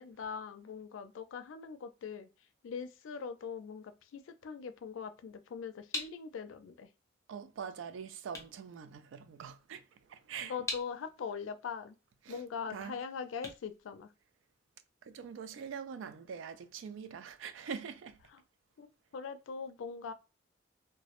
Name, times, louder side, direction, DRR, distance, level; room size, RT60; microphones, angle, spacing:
voice 1, 0.0-2.3 2.6-6.9 10.4-12.0 12.3-14.1 18.3-18.4 18.8-20.1, left 6 dB, 90° left, 0.4 m, -42 dB
sound 1, 5.9-14.7, left 2 dB, 15° left, 0.6 m, -46 dB
voice 2, 7.3-10.5 12.2-12.4 12.7-13.0 15.0-18.2, right 6 dB, 80° right, 0.3 m, -44 dB
2.2 x 2.0 x 2.9 m
head